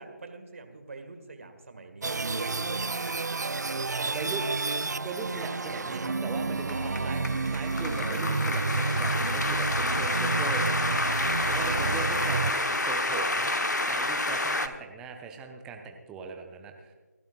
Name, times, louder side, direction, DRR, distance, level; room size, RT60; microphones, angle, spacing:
voice 1, 0.0-3.4 3.6-4.4 6.7-7.4 11.6-12.1, right 3 dB, 45° right, 7 dB, 1.9 m, -42 dB
sound 1, 2.0-12.5, right 3 dB, 70° right, 0.4 m, -30 dB
voice 2, 4.1-7.2 7.5-10.7 11.4-13.5 13.9-16.9, right 4 dB, 5° right, 4 dB, 0.6 m, -39 dB
sound 2, 5.4-14.7, left 2 dB, 75° left, 1.1 m, -29 dB
28.0 x 12.0 x 2.4 m, 1.4 s
figure-of-eight pair, 155°, 10 cm